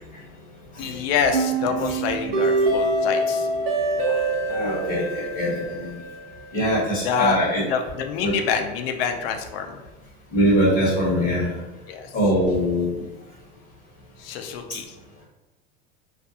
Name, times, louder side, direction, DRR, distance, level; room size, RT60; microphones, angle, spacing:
voice 1, 0.8-3.5 7.0-7.4 7.7-9.8 11.9-12.1 14.2-14.9, left 6 dB, 85° left, 5 dB, 0.5 m, -26 dB
sound 1, 1.3-6.4, right 2 dB, 85° right, 0.7 m, -24 dB
voice 2, 4.5-6.0 6.5-7.6 8.2-8.3 10.3-11.6 12.1-13.0, equal, 30° left, -7 dB, 1.1 m, -22 dB
2.4 x 2.2 x 2.7 m, 1.1 s
supercardioid pair, 135°, 29 cm